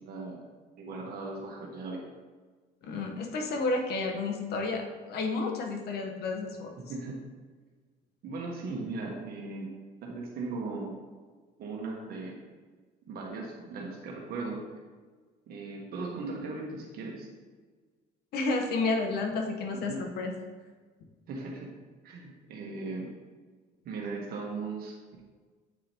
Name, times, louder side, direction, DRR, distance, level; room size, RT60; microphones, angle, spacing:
voice 1, 0.1-0.4 0.8-2.0 6.8-7.2 8.2-9.7 10.0-10.9 11.6-12.4 13.1-14.6 15.5-17.3 19.7-20.0 21.3-21.7 22.0-23.1 23.8-25.2, right 3 dB, 65° right, -1 dB, 1.3 m, -38 dB
voice 2, 2.8-6.7 18.3-20.3, left 3 dB, 70° left, 3 dB, 1.1 m, -31 dB
8.2 x 4.9 x 2.9 m, 1.4 s
cardioid pair, 110°, 17 cm